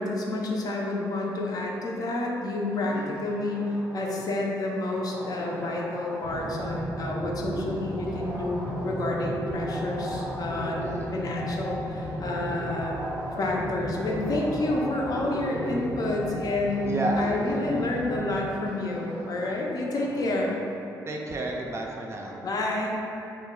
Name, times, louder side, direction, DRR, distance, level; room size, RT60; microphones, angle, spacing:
voice 1, 0.0-13.0 13.4-20.6 22.4-22.9, left 2 dB, 50° left, -2 dB, 0.4 m, -29 dB
sound 1, 2.9-4.5 4.8-6.9 7.5-9.2 9.5-11.5 12.0-13.5 13.9-15.9 16.7-18.2 18.7-20.7, equal, 85° right, 0.6 m, -42 dB
sound 2, 6.2-18.5, equal, 5° left, 0.7 m, -34 dB
voice 2, 10.8-11.1 16.8-17.3 21.1-22.4, right 1 dB, 35° right, 0 dB, 0.3 m, -32 dB
2.2 x 2.0 x 3.6 m, 2.8 s
supercardioid pair, 65°, 8 cm